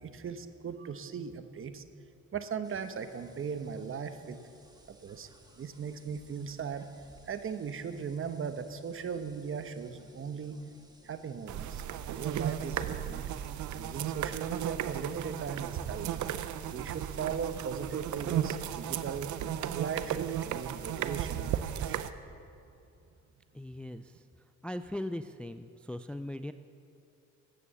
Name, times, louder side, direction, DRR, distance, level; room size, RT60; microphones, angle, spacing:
voice 1, 0.0-1.8 2.3-4.4 4.9-5.3 5.6-6.9 7.3-10.6 11.0-11.8 12.1-13.3 13.7-16.2 16.7-19.4 19.7-22.1, right 6 dB, 45° right, 10 dB, 1.0 m, -38 dB
sound 1, 2.6-21.8, right 1 dB, 15° right, 1.6 m, -60 dB
sound 2, 11.5-22.1, right 10 dB, 75° right, 0.7 m, -35 dB
voice 2, 23.5-24.2 24.6-26.5, left 1 dB, 5° left, 10 dB, 0.3 m, -39 dB
15.5 x 9.5 x 7.0 m, 2.6 s
cardioid pair, 90°, 30 cm